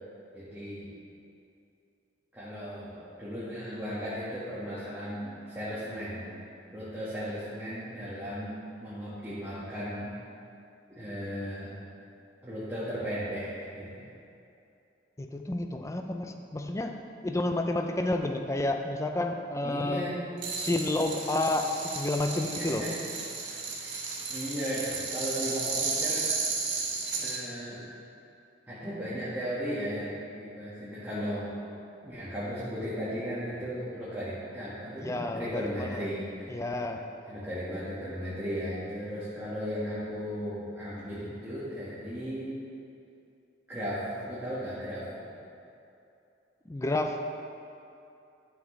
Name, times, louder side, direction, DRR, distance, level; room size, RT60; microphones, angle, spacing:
voice 1, 0.3-0.9 2.3-6.3 6.7-10.1 11.0-11.7 12.4-14.0 19.6-20.2 22.5-23.0 23.8-24.0 24.3-26.3 27.1-27.9 28.7-31.5 32.0-36.6 37.3-42.6 43.7-45.0, equal, 10° right, -12 dB, 1.6 m, -36 dB
voice 2, 15.2-17.0 17.2-20.1 20.6-22.8 35.0-36.1 36.5-37.0 46.7-47.2, left 2 dB, 15° left, 5 dB, 0.4 m, -30 dB
sound 1, 20.4-27.4, right 4 dB, 70° right, 1.5 m, -33 dB
12.5 x 5.9 x 3.2 m, 2.7 s
head